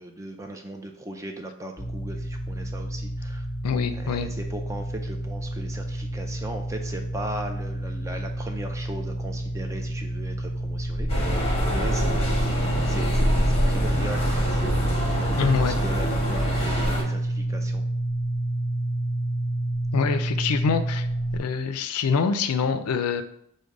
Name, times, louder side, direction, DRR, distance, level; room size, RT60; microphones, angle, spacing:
voice 1, 0.0-3.4 4.0-12.6 12.9-17.8 20.0-20.2, right 1 dB, 15° right, 3 dB, 0.3 m, -38 dB
sound 1, 1.8-21.4, right 1 dB, 40° right, 1.2 m, -29 dB
voice 2, 3.6-4.3 15.4-15.8 19.9-21.1 21.3-23.2, left 5 dB, 85° left, 9 dB, 0.4 m, -25 dB
sound 2, 11.1-17.0, equal, 25° left, 0.9 m, -25 dB
5.1 x 2.2 x 4.7 m, 0.71 s
head